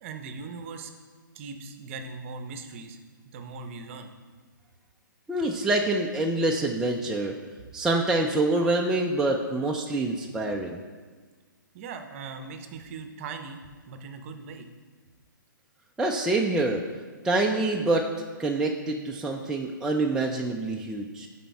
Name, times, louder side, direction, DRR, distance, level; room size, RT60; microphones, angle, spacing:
voice 1, 0.0-0.9 1.3-3.0 3.3-4.1 11.7-13.6 13.9-14.7, right 4 dB, 40° right, 7 dB, 0.7 m, -39 dB
voice 2, 5.3-7.3 7.7-10.8 16.0-16.8 17.2-18.1 18.4-21.3, right 2 dB, 5° right, 0 dB, 0.4 m, -26 dB
9.1 x 4.3 x 4.6 m, 1.5 s
hypercardioid pair, 135°, 11 cm